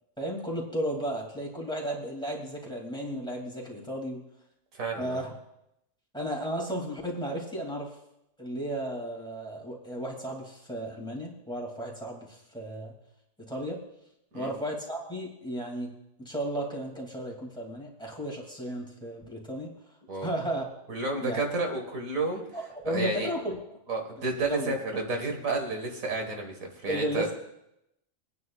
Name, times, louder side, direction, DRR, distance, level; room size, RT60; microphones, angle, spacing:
voice 1, 0.2-4.2 5.0-5.3 6.1-7.9 8.4-12.9 13.4-13.8 14.3-15.9 16.2-19.7 20.2-20.7 21.2-21.4 22.5-23.6 24.2-24.8 26.9-27.3, equal, 5° left, -1 dB, 2.3 m, -34 dB
voice 2, 4.7-5.2 14.3-14.5 20.1-20.3 20.9-22.4 22.8-23.3 23.9-27.3, right 3 dB, 75° right, 2 dB, 2.0 m, -31 dB
24.0 x 9.5 x 2.4 m, 0.83 s
omnidirectional pair, 1.4 m